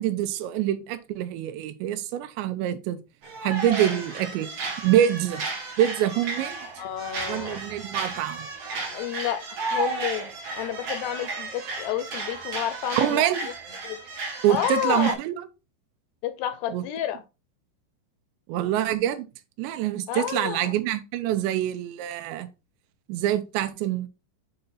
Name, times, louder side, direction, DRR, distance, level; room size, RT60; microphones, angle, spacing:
voice 1, 0.0-3.0 3.4-4.5 4.8-5.4 5.8-6.7 7.3-8.5 13.0-13.5 14.4-15.4 16.7-16.8 18.5-19.3 19.6-22.5 23.1-24.1, right 11 dB, 85° right, 2.9 m, -25 dB
sound 1, 3.2-15.1, right 3 dB, 50° right, 2.0 m, -33 dB
voice 2, 6.8-7.6 8.9-9.5 9.7-10.3 10.6-13.3 13.8-14.0 14.5-15.2 16.2-17.2 20.1-20.7, left 11 dB, 80° left, 2.5 m, -30 dB
8.0 x 4.0 x 4.0 m
omnidirectional pair, 5.1 m